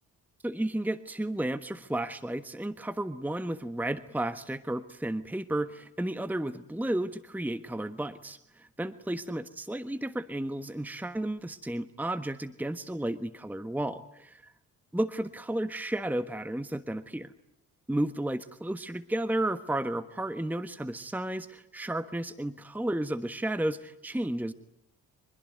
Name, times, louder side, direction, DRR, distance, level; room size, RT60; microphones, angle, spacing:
voice 1, 0.4-14.5 14.9-17.3 17.9-24.5, right 1 dB, 5° right, 10 dB, 1.3 m, -33 dB
25.0 x 22.5 x 9.5 m, 0.79 s
figure-of-eight pair, 45°, 45 cm